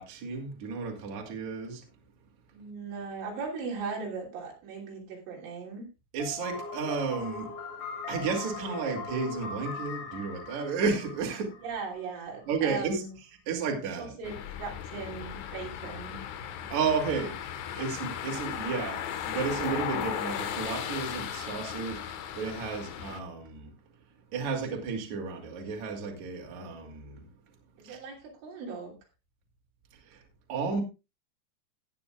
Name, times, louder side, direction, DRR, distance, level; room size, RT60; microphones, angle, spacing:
voice 1, 0.0-1.8 6.1-7.5 8.1-11.5 12.5-13.0 13.5-14.1 16.7-17.4 17.8-23.7 24.3-27.3 27.8-28.0 30.0-30.2 30.5-30.8, right 5 dB, 45° right, 3.3 m, -32 dB
voice 2, 2.5-5.9 11.6-13.1 14.0-16.2 27.8-28.9, right 4 dB, 80° right, 5.4 m, -38 dB
sound 1, 6.2-12.0, left 3 dB, 55° left, 4.4 m, -40 dB
sound 2, 14.2-23.2, left 9 dB, 85° left, 3.8 m, -36 dB
18.0 x 9.7 x 2.4 m
omnidirectional pair, 5.5 m